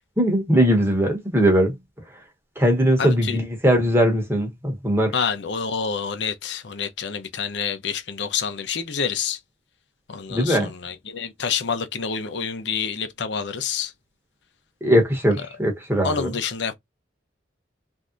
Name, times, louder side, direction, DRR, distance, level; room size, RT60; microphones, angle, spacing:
voice 1, 0.2-1.7 2.6-5.1 10.3-10.7 14.8-16.3, equal, 15° right, 1.0 m, -20 dB
voice 2, 3.0-3.4 5.1-9.4 10.1-13.9 16.0-16.7, left 6 dB, 75° left, 0.7 m, -28 dB
3.3 x 2.7 x 2.5 m
head